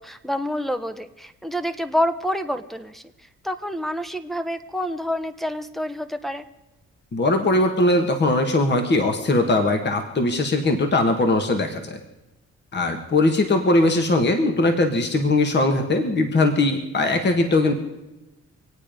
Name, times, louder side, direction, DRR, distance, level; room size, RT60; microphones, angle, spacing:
voice 1, 0.0-6.4, equal, ahead, 7 dB, 1.0 m, -28 dB
voice 2, 7.1-12.0 12.7-17.7, left 2 dB, 35° left, 5 dB, 1.7 m, -20 dB
25.5 x 9.1 x 5.2 m, 0.98 s
cardioid pair, 90°, 30 cm